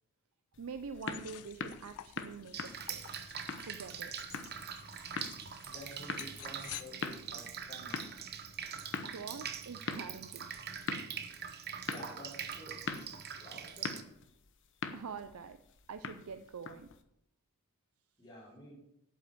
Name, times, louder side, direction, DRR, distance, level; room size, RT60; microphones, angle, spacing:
sound 1, 0.5-17.0, left 4 dB, 55° left, 0.9 m, -44 dB
voice 1, 0.6-3.0 3.6-4.2 9.0-10.5 14.9-15.6 15.9-16.9, right 5 dB, 75° right, 10 dB, 0.5 m, -45 dB
sound 2, 0.9-6.8, left 12 dB, 85° left, 0.6 m, -51 dB
Drip, 2.5-14.0, right 8 dB, 45° right, 0.8 m, -43 dB
voice 2, 5.5-8.0 11.9-13.9 18.2-18.8, equal, 20° left, -12 dB, 4.7 m, -51 dB
8.6 x 8.2 x 6.8 m, 0.83 s
head